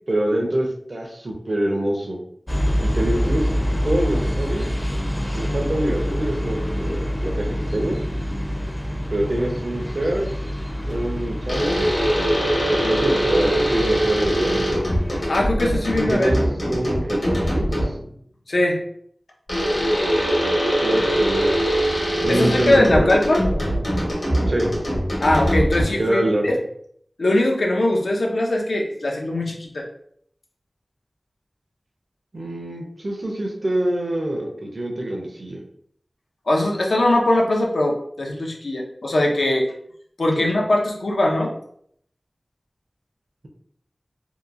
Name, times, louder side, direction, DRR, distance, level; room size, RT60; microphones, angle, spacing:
voice 1, 0.1-2.2 2.8-3.5 3.8-4.7 5.3-8.0 9.1-10.3 10.9-11.9 12.7-14.6 16.1-16.4 16.7-17.9 20.8-22.0 22.2-23.1 24.5-24.7 26.0-26.5 32.3-35.6 40.4-40.5, right 1 dB, 65° right, 0 dB, 0.6 m, -25 dB
sound 1, 2.5-15.3, equal, 15° left, 0.4 m, -26 dB
sound 2, 11.5-18.1 19.5-26.1, equal, 70° left, 1.0 m, -22 dB
voice 2, 15.3-16.3 18.5-18.8 22.3-23.4 25.2-26.6 27.2-29.9 36.5-39.7 40.2-41.5, left 1 dB, 90° left, 0 dB, 0.5 m, -21 dB
2.8 x 2.2 x 2.4 m, 0.66 s
wide cardioid pair, 45°, 0 cm